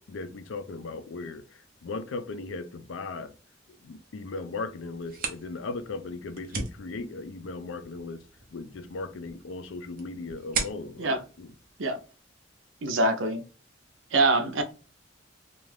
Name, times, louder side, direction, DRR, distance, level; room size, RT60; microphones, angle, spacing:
voice 1, 0.0-1.4 1.8-3.3 3.8-8.2 8.5-11.5, left 3 dB, 85° left, 0.4 m, -37 dB
sound 1, 4.9-12.4, right 5 dB, 50° right, 0.6 m, -39 dB
voice 2, 12.8-13.4 14.1-14.6, right 2 dB, 90° right, 0.6 m, -24 dB
2.5 x 2.3 x 3.2 m
head